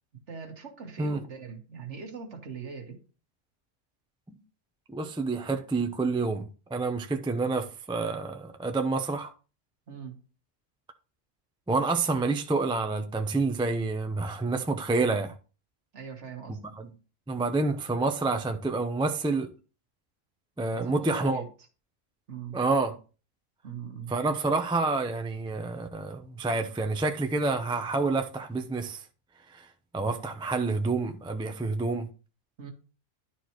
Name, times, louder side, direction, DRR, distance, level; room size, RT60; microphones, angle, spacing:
voice 1, 0.3-3.0 9.9-10.2 15.9-16.6 20.7-21.5 22.3-22.6 23.6-24.1 32.6-32.7, right 6 dB, 60° right, 1.6 m, -41 dB
voice 2, 4.9-9.3 11.7-15.3 16.8-16.9 17.3-19.5 20.6-21.4 22.5-23.0 24.1-29.0 29.5-29.6 29.9-32.1, right 3 dB, 5° right, 0.4 m, -28 dB
11.5 x 4.5 x 3.0 m
omnidirectional pair, 1.3 m